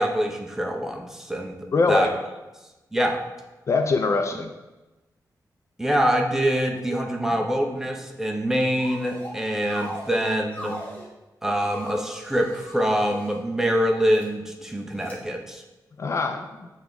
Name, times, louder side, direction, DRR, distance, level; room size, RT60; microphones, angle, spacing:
voice 1, 0.0-2.1 2.9-3.2 5.8-10.8 11.4-15.6, equal, 5° right, 2 dB, 0.7 m, -25 dB
voice 2, 1.7-2.1 3.7-4.5 14.9-15.3 16.0-16.7, left 3 dB, 45° left, 6 dB, 0.4 m, -24 dB
sound 1, 8.7-9.3 9.6-11.1 11.5-13.4 14.0-14.2 15.0-15.1, left 1 dB, 20° left, 1.4 m, -39 dB
7.7 x 3.5 x 3.8 m, 1.1 s
wide cardioid pair, 150°, 7 cm